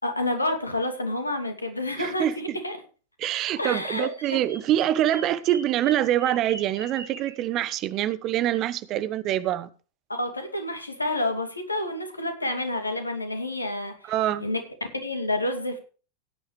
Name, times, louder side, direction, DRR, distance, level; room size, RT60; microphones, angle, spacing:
voice 1, 0.0-2.8 3.6-4.1 10.1-14.1 14.4-14.6 14.9-15.8, left 1 dB, 80° left, 2.5 m, -29 dB
voice 2, 2.0-2.6 3.2-9.7 14.0-14.5, right 12 dB, 35° right, 1.0 m, -25 dB
Bird vocalization bird call bird song, 3.7-7.4, right 3 dB, 70° right, 2.6 m, -43 dB
17.0 x 9.9 x 3.2 m
figure-of-eight pair, 90°, 0 cm